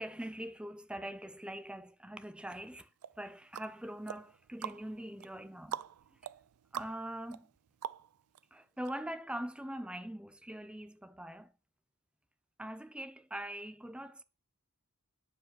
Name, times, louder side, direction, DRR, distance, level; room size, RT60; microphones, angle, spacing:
voice 1, 0.0-2.9 3.2-5.8 6.7-7.5 8.5-11.5 12.6-14.2, right 1 dB, 5° right, 0.6 m, -42 dB
sound 1, 3.0-8.4 8.8-8.9, right 9 dB, 85° right, 0.4 m, -45 dB
9.8 x 5.0 x 7.4 m
head